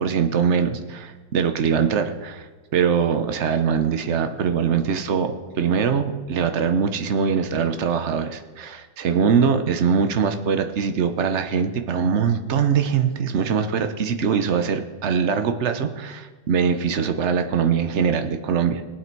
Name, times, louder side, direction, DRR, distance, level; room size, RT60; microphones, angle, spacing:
voice 1, 0.0-2.5 2.7-18.9, right 6 dB, 65° right, 7 dB, 0.6 m, -22 dB
19.0 x 8.6 x 4.6 m, 1.3 s
omnidirectional pair, 2.2 m